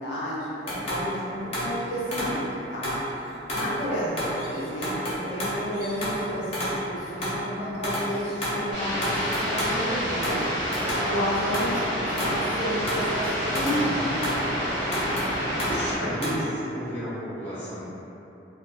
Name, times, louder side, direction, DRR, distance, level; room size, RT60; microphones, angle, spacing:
voice 1, 0.0-3.0 3.5-10.4 11.1-14.5, equal, 70° left, -7 dB, 0.5 m, -31 dB
sound 1, 0.7-3.1 3.5-16.4, equal, 35° left, 0.6 m, -31 dB
sound 2, 8.7-15.9, equal, 30° right, 0.9 m, -29 dB
voice 2, 10.8-11.2 15.5-17.8, equal, 10° left, -14 dB, 0.9 m, -32 dB
2.6 x 2.2 x 2.4 m, 2.8 s
head